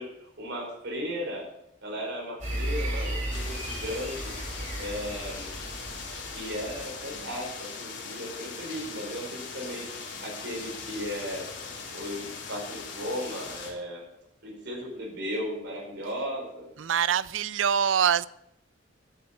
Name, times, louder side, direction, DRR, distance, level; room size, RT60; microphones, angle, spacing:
voice 1, 0.0-1.4 1.8-4.3 4.8-5.5 6.3-9.8 10.2-11.4 11.9-14.0 14.4-16.7, equal, 65° right, 4.8 m, -36 dB
sound 1, 2.4-7.4, right 1 dB, 45° right, 4.7 m, -35 dB
sound 2, 3.3-13.7, left 5 dB, 70° left, 3.2 m, -40 dB
voice 2, 16.8-18.3, right 8 dB, 80° right, 0.4 m, -24 dB
10.5 x 8.6 x 7.2 m
head